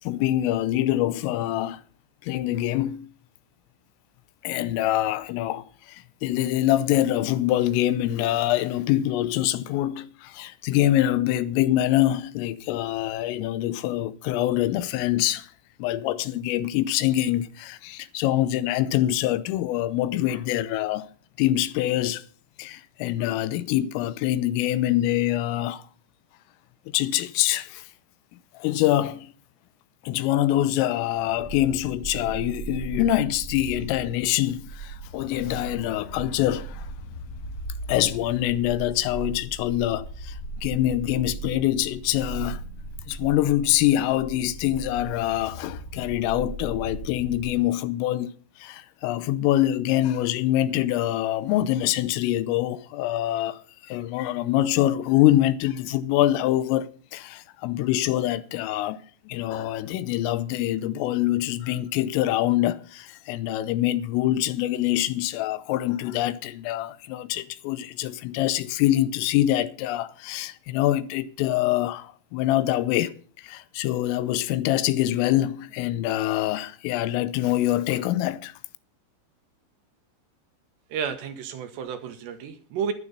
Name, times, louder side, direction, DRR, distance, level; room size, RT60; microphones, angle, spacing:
voice 1, 0.0-1.8 2.2-3.1 4.4-15.5 15.8-21.1 21.4-22.2 22.6-25.8 26.9-27.9 28.6-29.3 30.0-36.9 37.9-42.6 43.1-59.0 59.3-78.5, left 14 dB, 85° left, 3.4 m, -25 dB
sound 1, 31.1-47.5, right 3 dB, 40° left, 0.9 m, -38 dB
voice 2, 80.9-82.9, right 7 dB, 70° right, 3.2 m, -31 dB
12.0 x 11.0 x 5.5 m
omnidirectional pair, 5.8 m